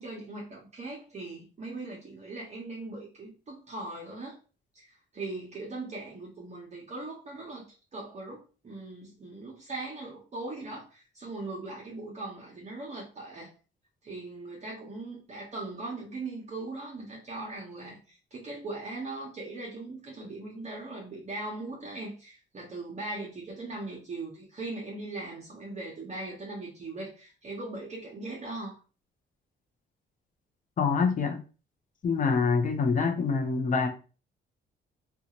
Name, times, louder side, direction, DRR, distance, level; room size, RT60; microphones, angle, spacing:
voice 1, 0.0-4.4 4.7-7.6 7.9-13.5 14.0-28.8, right 2 dB, 35° right, 0.9 m, -39 dB
voice 2, 30.8-31.4 32.0-33.9, left 5 dB, 40° left, 0.7 m, -25 dB
2.6 x 2.4 x 2.9 m
cardioid pair, 90°, 20 cm